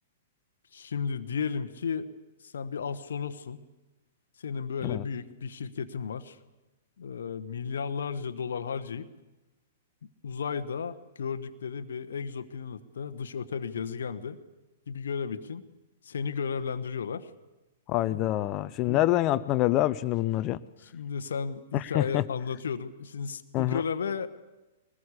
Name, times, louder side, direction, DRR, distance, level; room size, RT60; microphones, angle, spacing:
voice 1, 0.7-2.1 2.4-3.6 4.4-6.4 7.0-9.1 10.0-14.4 14.9-15.6 16.0-17.3 18.1-18.2 18.9-19.0 20.8-24.3, left 6 dB, 60° left, 10 dB, 1.1 m, -34 dB
voice 2, 17.9-20.6 21.7-22.2 23.5-23.8, left 15 dB, 30° left, 16 dB, 0.7 m, -26 dB
22.5 x 20.0 x 8.4 m, 1.1 s
figure-of-eight pair, 110°, 0 cm